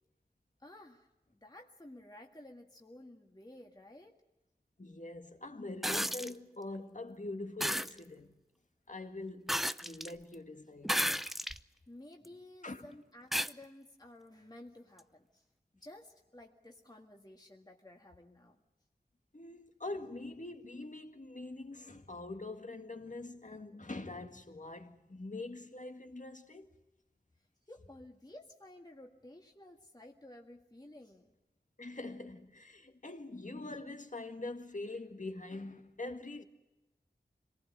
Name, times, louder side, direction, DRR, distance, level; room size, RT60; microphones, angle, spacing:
voice 1, 0.6-4.1 11.9-15.5 15.7-18.6 27.4-31.3, left 1 dB, 20° left, 1.9 m, -54 dB
voice 2, 4.8-8.4 8.9-10.9 12.6-12.9 19.3-26.7 31.8-36.4, left 2 dB, 45° left, 2.0 m, -44 dB
sound 1, 5.8-6.3 7.6-7.9 9.5-10.1 10.8-11.6 12.2-12.3 13.3-13.5 15.0-15.1, equal, ahead, 0.7 m, -32 dB
26.0 x 19.5 x 7.6 m
wide cardioid pair, 50°, 18 cm